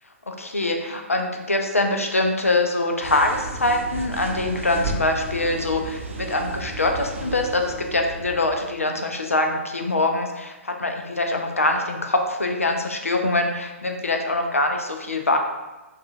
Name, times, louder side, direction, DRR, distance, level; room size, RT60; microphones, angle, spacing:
voice 1, 0.3-15.4, left 2 dB, 85° left, 4 dB, 0.5 m, -24 dB
sound 1, 3.0-8.8, right 2 dB, 65° right, 0.5 m, -34 dB
4.8 x 2.4 x 2.6 m, 1.1 s
figure-of-eight pair, 120°, 7 cm